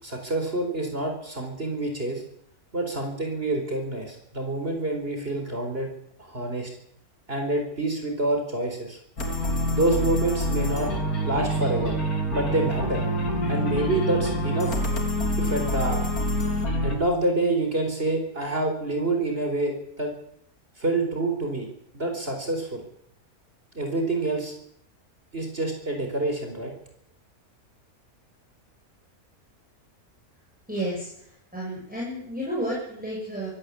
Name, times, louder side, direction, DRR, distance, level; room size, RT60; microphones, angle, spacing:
voice 1, 0.0-2.2 2.7-5.9 6.2-6.7 7.3-9.0 9.7-10.9 11.2-11.9 12.3-13.0 13.5-14.8 15.4-16.0 16.8-20.1 20.8-21.7 21.9-22.9 23.7-24.5 25.3-26.7, right 2 dB, 40° right, 3 dB, 4.7 m, -27 dB
sound 1, 9.2-17.0, equal, 90° left, 4.0 m, -26 dB
voice 2, 30.7-31.1 31.5-33.6, right 1 dB, 5° right, -5 dB, 7.0 m, -31 dB
25.5 x 14.0 x 8.6 m, 0.70 s
omnidirectional pair, 1.5 m